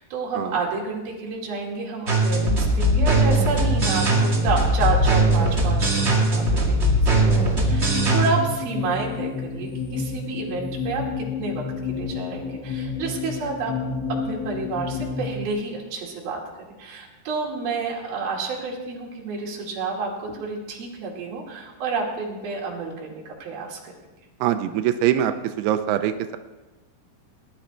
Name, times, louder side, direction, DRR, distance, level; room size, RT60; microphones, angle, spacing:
voice 1, 0.0-13.8 14.1-16.4 16.8-23.9, right 4 dB, 70° right, -2 dB, 4.3 m, -30 dB
sound 1, 2.1-8.3, right 1 dB, 25° right, 1.6 m, -20 dB
sound 2, 3.0-15.5, left 5 dB, 60° left, 1.9 m, -31 dB
voice 2, 24.4-25.3 25.6-26.4, right 11 dB, 90° right, 9 dB, 2.7 m, -23 dB
19.5 x 11.0 x 4.5 m, 1.1 s
omnidirectional pair, 4.5 m